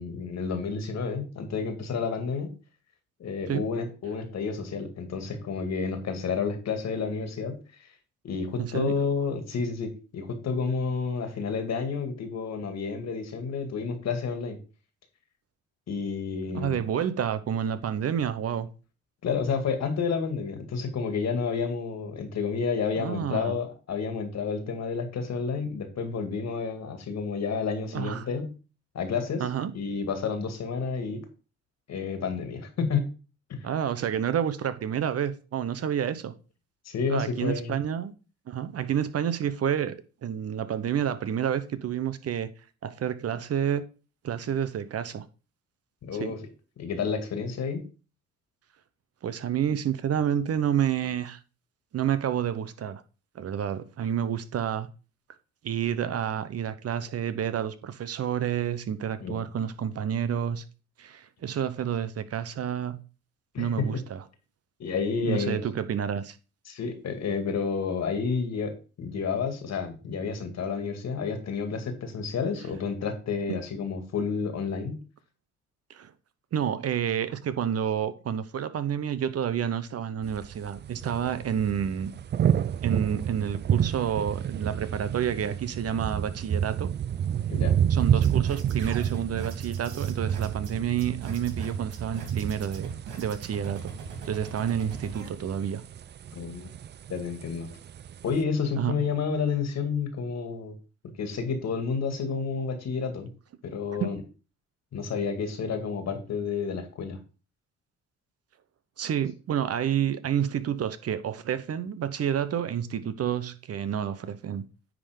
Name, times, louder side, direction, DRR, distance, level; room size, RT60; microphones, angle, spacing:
voice 1, 0.0-2.5 3.2-7.6 8.2-14.6 15.9-16.8 19.2-28.5 28.9-29.4 29.7-31.2 31.9-33.1 33.5-33.6 36.9-37.7 46.0-46.4 46.8-47.8 59.2-59.4 63.5-63.9 64.8-65.6 66.7-75.0 87.5-87.8 96.3-96.7 97.1-97.7 98.2-100.8 101.2-103.3 103.6-104.2 104.9-107.2, left 5 dB, 60° left, 2.1 m, -30 dB
voice 2, 8.6-9.0 16.5-18.7 23.0-23.6 27.9-28.3 29.4-29.7 33.6-36.3 37.1-38.1 38.5-42.5 42.8-43.8 44.2-45.2 46.2-46.3 49.2-51.4 51.9-53.0 53.3-54.9 55.6-60.6 61.0-63.0 63.6-64.2 65.2-66.4 73.5-73.6 75.9-76.1 76.5-82.1 82.8-86.9 87.9-92.9 93.2-93.9 94.2-95.8 98.8-98.9 104.0-104.1 109.0-114.7, right 9 dB, 55° right, 0.9 m, -29 dB
sound 1, 80.2-98.4, right 9 dB, 35° right, 0.4 m, -30 dB
sound 2, 88.0-95.3, right 4 dB, 90° right, 2.5 m, -43 dB
9.8 x 3.8 x 5.1 m
cardioid pair, 90°, 30 cm